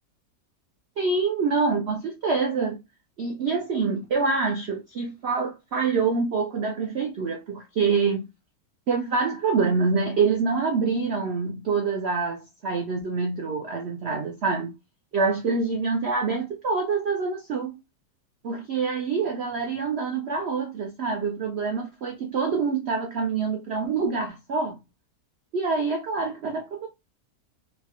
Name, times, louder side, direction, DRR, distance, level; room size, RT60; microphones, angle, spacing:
voice 1, 1.0-2.8 3.2-8.3 8.9-14.7 15.1-17.8 18.4-24.8 25.5-26.9, right 4 dB, 85° right, 0.5 m, -26 dB
4.1 x 2.2 x 2.9 m
omnidirectional pair, 1.9 m